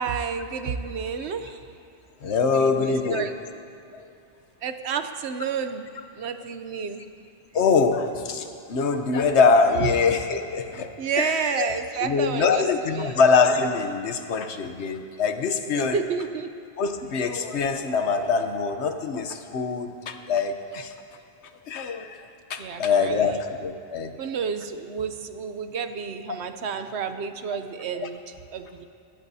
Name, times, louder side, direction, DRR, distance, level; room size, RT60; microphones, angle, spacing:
voice 1, 0.0-1.7 2.4-3.3 4.6-5.9 6.2-7.0 9.8-9.9 11.0-12.6 12.9-13.2 15.7-16.5 22.6-23.4 24.2-28.8, right 6 dB, 75° right, 9 dB, 1.0 m, -30 dB
voice 2, 2.2-3.3 3.9-4.1 7.5-10.9 11.2-11.7 12.0-16.0 16.8-20.9 21.7-22.2 22.5-24.1, left 5 dB, 80° left, 7 dB, 1.1 m, -23 dB
19.5 x 16.5 x 2.7 m, 2.7 s
omnidirectional pair, 1.1 m